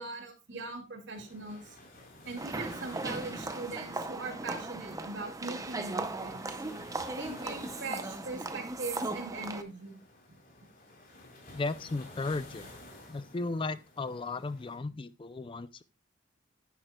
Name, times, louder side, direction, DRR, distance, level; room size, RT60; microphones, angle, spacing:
voice 1, 0.0-1.6 2.3-6.4 7.1-10.0, right 3 dB, 70° right, 4 dB, 2.4 m, -40 dB
sound 1, 1.1-14.8, left 2 dB, 50° left, 3.7 m, -53 dB
sound 2, 2.4-9.6, right 2 dB, 20° right, 0.6 m, -38 dB
voice 2, 11.5-12.7 13.1-15.8, left 3 dB, 25° left, 14 dB, 0.4 m, -35 dB
10.5 x 10.0 x 2.3 m, 0.26 s
head